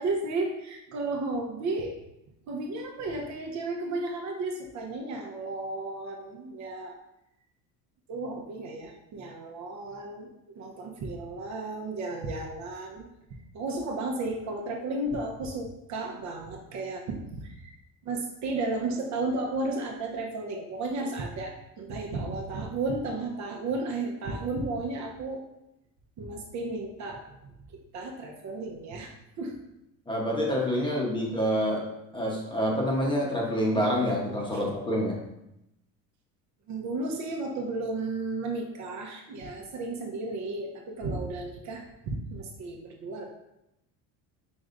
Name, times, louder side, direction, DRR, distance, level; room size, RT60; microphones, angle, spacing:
voice 1, 0.0-2.0 2.5-7.0 8.1-10.3 10.6-13.0 13.5-17.7 18.0-25.4 26.2-29.5 30.8-30.9 34.5-34.6 36.7-43.3, right 2 dB, 50° right, 1 dB, 0.8 m, -33 dB
voice 2, 30.1-31.8 32.1-35.2, equal, 15° left, -2 dB, 0.9 m, -27 dB
5.2 x 3.3 x 2.5 m, 0.86 s
supercardioid pair, 115°, 38 cm